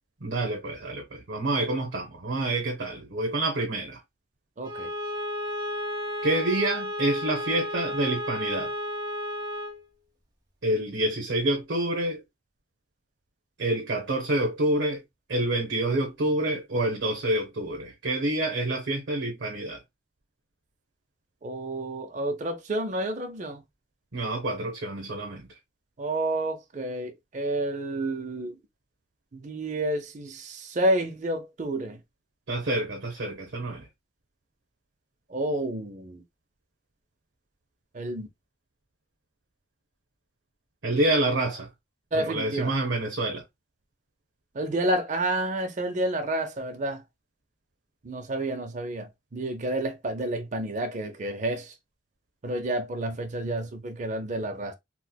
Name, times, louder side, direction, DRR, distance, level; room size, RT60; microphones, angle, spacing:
voice 1, 0.2-4.0 6.2-8.7 10.6-12.2 13.6-15.0 15.3-19.8 24.1-25.5 32.5-33.9 40.8-41.7 42.1-43.4, right 1 dB, 70° right, 0.8 m, -27 dB
Bowed string instrument, 4.6-9.8, left 1 dB, 20° right, 0.9 m, -33 dB
voice 2, 4.6-4.9 21.4-23.6 26.0-28.6 29.3-32.0 35.3-36.2 37.9-38.3 42.1-42.7 44.5-47.0 48.0-51.7 52.4-54.7, right 1 dB, 40° right, 0.5 m, -30 dB
4.3 x 2.1 x 2.2 m
head